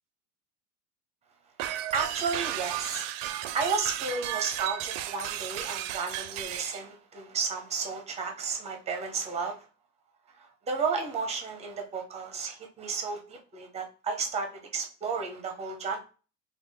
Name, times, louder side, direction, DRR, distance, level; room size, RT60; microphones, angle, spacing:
sound 1, 1.6-6.8, right 12 dB, 60° right, 0.5 m, -34 dB
voice 1, 1.9-9.6 10.4-16.0, right 5 dB, 15° right, 3 dB, 0.6 m, -33 dB
3.5 x 2.4 x 3.5 m, 0.35 s
supercardioid pair, 140°, 43 cm